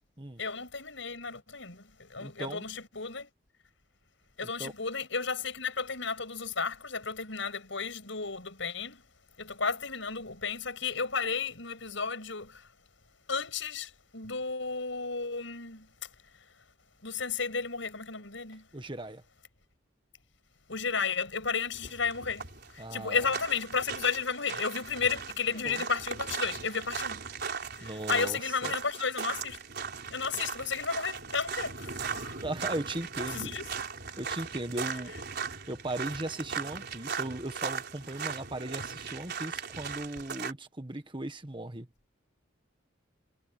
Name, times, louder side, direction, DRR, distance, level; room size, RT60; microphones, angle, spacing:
voice 1, 0.4-3.3 4.4-9.0 9.4-12.7 13.3-15.9 17.0-18.7 20.7-22.5 22.7-27.2 27.8-29.6 30.1-32.4 33.3-33.6, left 5 dB, 70° left, 7.7 m, -33 dB
voice 2, 2.2-2.7 4.6-4.7 18.7-19.2 22.8-23.3 25.6-25.8 27.8-28.7 32.4-33.5 34.2-35.2 35.7-41.9, right 1 dB, 25° right, 1.5 m, -37 dB
sound 1, 21.7-40.5, right 6 dB, 55° right, 4.3 m, -38 dB
head